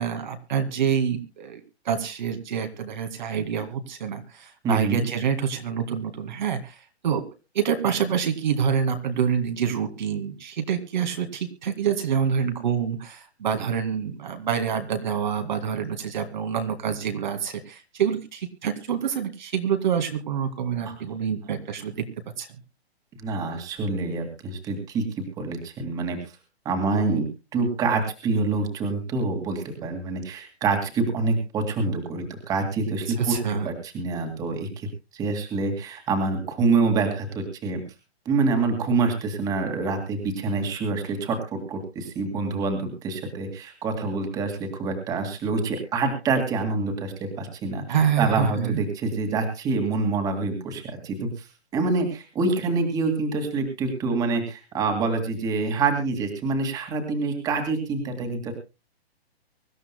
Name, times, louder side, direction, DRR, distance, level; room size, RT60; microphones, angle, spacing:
voice 1, 0.0-7.3 7.5-22.0 22.4-22.5 33.1-33.7 47.9-48.8, right 7 dB, 45° right, 6 dB, 2.1 m, -27 dB
voice 2, 4.6-5.1 20.9-21.0 23.2-26.3 26.7-27.3 27.5-33.4 33.6-34.9 35.1-37.8 38.3-47.8 48.2-51.5 51.7-58.5, right 3 dB, 10° right, 6 dB, 2.2 m, -26 dB
24.5 x 12.5 x 2.2 m, 0.30 s
hypercardioid pair, 170°, 32 cm